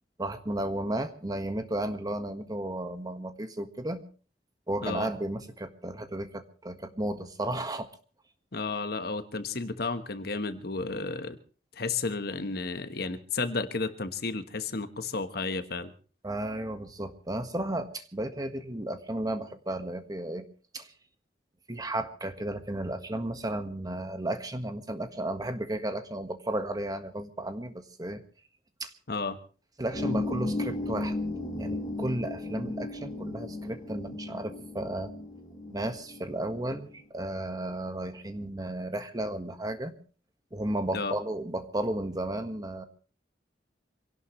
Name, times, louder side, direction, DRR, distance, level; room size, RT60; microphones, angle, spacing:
voice 1, 0.2-4.0 4.7-7.9 16.2-20.5 20.7-20.9 21.7-28.2 28.8-28.9 29.8-31.1 31.5-35.1 35.7-40.0 40.5-42.8, right 1 dB, 20° right, 8 dB, 1.5 m, -34 dB
voice 2, 8.5-11.4 11.7-15.9 29.1-29.4 40.9-41.1, left 3 dB, 60° left, 10 dB, 1.3 m, -32 dB
sound 1, 29.9-36.9, left 2 dB, 25° left, 5.4 m, -35 dB
26.0 x 17.5 x 3.2 m, 0.38 s
head